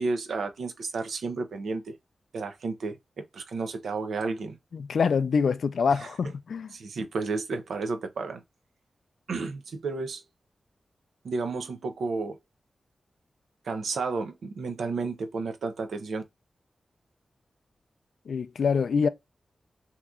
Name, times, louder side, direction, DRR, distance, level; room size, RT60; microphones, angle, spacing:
voice 1, 0.0-1.9 2.3-4.6 5.9-6.1 6.7-8.4 9.3-10.2 11.2-12.4 13.6-16.2, right 4 dB, 90° right, 0.6 m, -32 dB
voice 2, 4.7-6.7 18.3-19.1, left 5 dB, 80° left, 0.3 m, -25 dB
2.8 x 2.4 x 3.5 m
cardioid pair, 55°, 0 cm